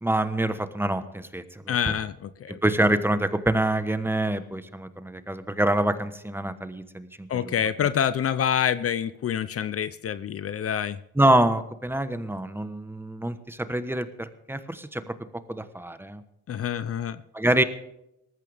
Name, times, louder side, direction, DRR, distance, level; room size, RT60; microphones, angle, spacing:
voice 1, 0.0-1.8 2.5-7.5 11.2-15.1 15.5-16.2 17.3-17.6, right 1 dB, 5° right, 11 dB, 1.2 m, -26 dB
voice 2, 1.7-2.6 7.3-11.0 16.5-17.2, left 8 dB, 50° left, 15 dB, 0.7 m, -27 dB
19.0 x 14.0 x 3.5 m, 0.83 s
cardioid pair, 90°, 30 cm